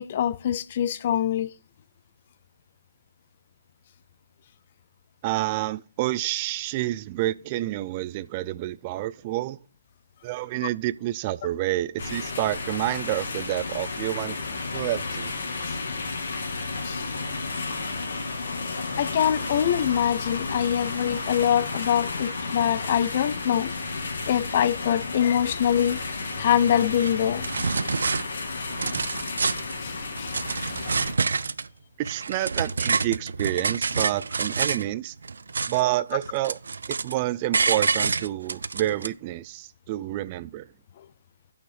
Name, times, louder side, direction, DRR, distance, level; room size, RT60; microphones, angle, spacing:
voice 1, 0.0-1.5 15.6-15.8 16.8-17.1 19.0-23.7 24.3-26.0 26.4-27.5 29.4-30.7, left 9 dB, 45° left, 0.5 m, -24 dB
voice 2, 5.2-9.6 10.2-14.4 14.7-15.3 32.0-35.1 35.7-36.6 36.9-40.7, right 15 dB, 30° right, 0.4 m, -28 dB
sound 1, 12.0-31.1, left 3 dB, 65° left, 2.7 m, -32 dB
sound 2, 27.0-27.1 27.4-28.2 28.6-29.7 30.2-31.7 32.0-34.9 35.2-36.0 36.2-37.2 37.5-39.1, right 4 dB, 80° right, 0.6 m, -27 dB
8.6 x 6.4 x 4.9 m
hypercardioid pair, 155°, 0 cm